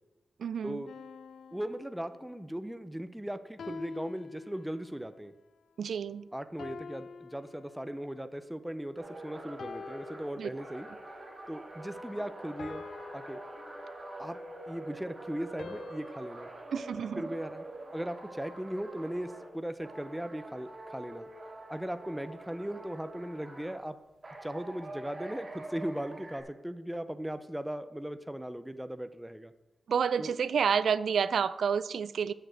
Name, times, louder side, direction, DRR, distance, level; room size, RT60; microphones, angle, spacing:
voice 1, 0.4-0.8 5.8-6.3 10.4-10.5 16.7-17.2 29.9-32.3, right 7 dB, 75° right, 15 dB, 0.3 m, -29 dB
sound 1, 0.9-2.5 3.6-5.1 6.6-8.3 9.6-11.1 12.6-14.3 15.6-16.6, left 5 dB, 75° left, 0.4 m, -47 dB
voice 2, 1.5-5.3 6.3-10.9 11.5-12.8 13.1-13.4 14.2-14.4 14.7-16.5 17.2-17.6 17.9-21.3 21.7-24.0 24.4-29.5 30.2-30.3, right 1 dB, 5° right, 10 dB, 0.5 m, -38 dB
sound 2, 9.0-19.5 19.8-23.8 24.2-26.4, right 1 dB, 25° right, 2.1 m, -45 dB
6.8 x 6.5 x 7.5 m, 0.99 s
wide cardioid pair, 160°, 0 cm